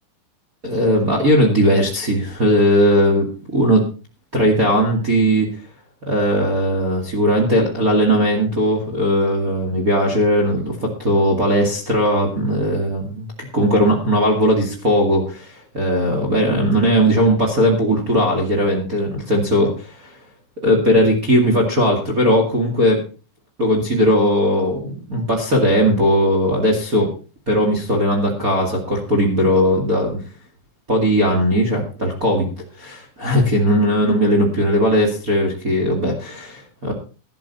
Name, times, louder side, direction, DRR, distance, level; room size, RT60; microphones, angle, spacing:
voice 1, 0.6-3.3 3.5-3.9 4.3-5.5 6.0-13.3 13.5-20.1 20.6-23.0 23.6-27.1 27.5-30.2 30.9-36.9, equal, 50° right, 0 dB, 0.9 m, -18 dB
13.5 x 12.0 x 4.1 m, 0.34 s
omnidirectional pair, 5.7 m